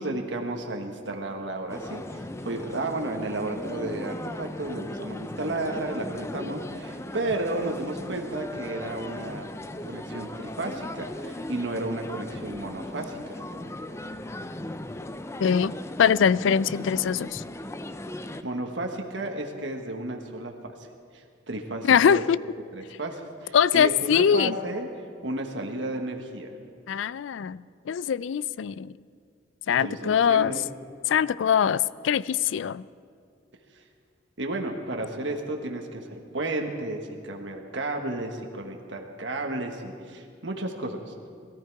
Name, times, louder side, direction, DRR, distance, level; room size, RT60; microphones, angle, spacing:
voice 1, 0.0-9.5 9.8-13.4 18.4-20.9 21.1-22.2 22.7-24.9 25.2-26.5 29.8-30.6 33.7-33.8 34.4-41.3, right 2 dB, 70° right, 3 dB, 1.4 m, -33 dB
sound 1, 1.7-18.4, left 1 dB, 15° left, 0.5 m, -37 dB
voice 2, 15.4-15.7 16.0-17.4 21.8-22.4 23.5-24.5 26.9-28.9 29.7-30.5 31.1-32.8, left 7 dB, 80° left, 19 dB, 0.4 m, -22 dB
21.5 x 14.0 x 4.7 m, 2.2 s
head